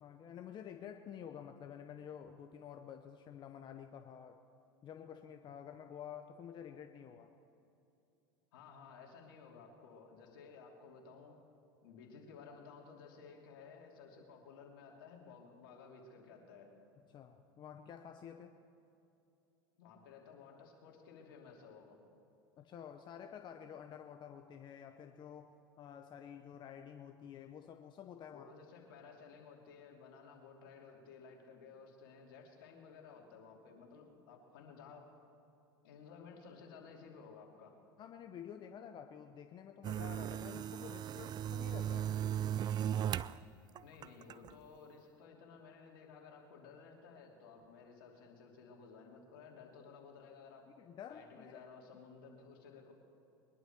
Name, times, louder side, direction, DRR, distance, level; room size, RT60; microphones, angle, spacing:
voice 1, 0.0-4.4 4.8-7.3 17.1-18.5 22.6-28.5 38.0-42.1 50.8-51.7, left 8 dB, 40° left, 6 dB, 0.9 m, -50 dB
voice 2, 8.5-11.4 11.8-16.7 19.8-22.0 28.3-35.1 35.8-37.7 43.8-50.7 51.1-52.9, left 5 dB, 75° left, 0 dB, 2.8 m, -55 dB
sound 1, 39.8-43.4 43.8-44.5, right 10 dB, 35° right, 0.4 m, -37 dB
22.0 x 11.5 x 4.5 m, 2.8 s
hypercardioid pair, 90°, 12 cm